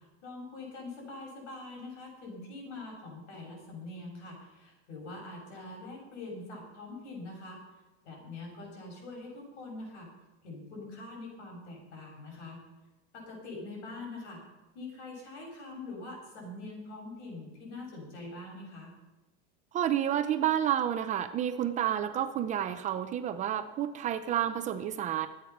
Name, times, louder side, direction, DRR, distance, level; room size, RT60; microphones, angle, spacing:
voice 1, 0.0-7.6 8.0-10.1 10.4-12.6 13.1-14.4 14.7-18.9, left 2 dB, 80° left, 0 dB, 7.4 m, -44 dB
voice 2, 19.7-25.3, right 10 dB, 20° right, 9 dB, 0.5 m, -30 dB
22.5 x 8.8 x 6.0 m, 1.1 s
supercardioid pair, 165°, 34 cm